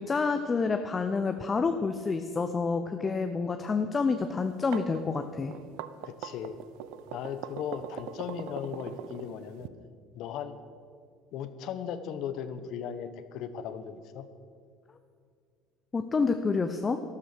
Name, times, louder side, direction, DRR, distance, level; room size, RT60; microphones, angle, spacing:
voice 1, 0.0-5.5 15.9-17.0, left 4 dB, 20° left, 8 dB, 0.6 m, -28 dB
sound 1, 4.4-9.7, right 11 dB, 80° right, 0.7 m, -41 dB
voice 2, 6.0-6.6 7.1-9.7 10.1-10.6 11.3-14.3, left 8 dB, 60° left, 11 dB, 1.0 m, -37 dB
12.5 x 12.5 x 6.7 m, 2.1 s
cardioid pair, 140°, 0 cm